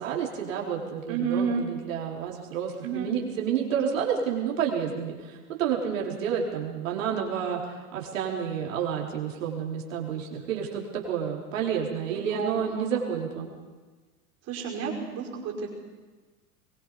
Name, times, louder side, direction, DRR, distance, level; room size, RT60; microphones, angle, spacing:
voice 1, 0.0-13.5, right 7 dB, 55° right, -2 dB, 4.7 m, -30 dB
voice 2, 1.1-1.7 2.8-3.1 12.1-12.9 14.5-15.7, right 5 dB, 35° right, -1 dB, 5.5 m, -31 dB
23.5 x 22.0 x 5.3 m, 1.3 s
figure-of-eight pair, 95°, 45 cm